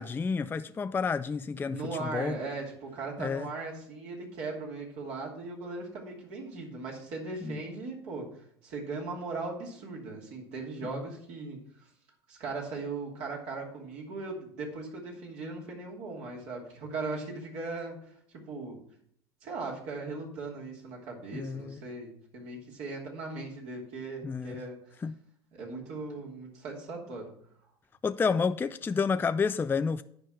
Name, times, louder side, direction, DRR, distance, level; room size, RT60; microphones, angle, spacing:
voice 1, 0.0-2.4 3.2-3.5 7.4-7.6 10.8-10.9 21.4-21.8 24.2-24.6 25.0-25.2 28.0-30.0, left 5 dB, 15° left, 0.4 m, -30 dB
voice 2, 1.7-11.6 12.3-18.8 19.4-24.8 25.5-27.3, right 3 dB, 55° right, 2.8 m, -38 dB
10.0 x 5.0 x 5.8 m
hypercardioid pair, 75°, 13 cm